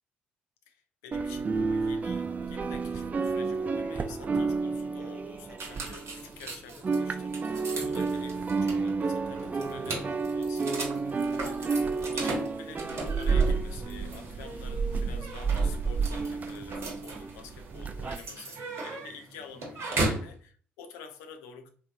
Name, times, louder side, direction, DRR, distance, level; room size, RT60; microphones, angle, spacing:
voice 1, 0.7-21.7, left 6 dB, 70° left, 0.4 m, -49 dB
sound 1, 1.1-6.4 6.7-18.1, right 4 dB, 25° right, 0.3 m, -30 dB
sound 2, 5.6-20.3, right 2 dB, 50° right, 1.0 m, -37 dB
3.2 x 2.4 x 2.6 m
figure-of-eight pair, 45°, 6 cm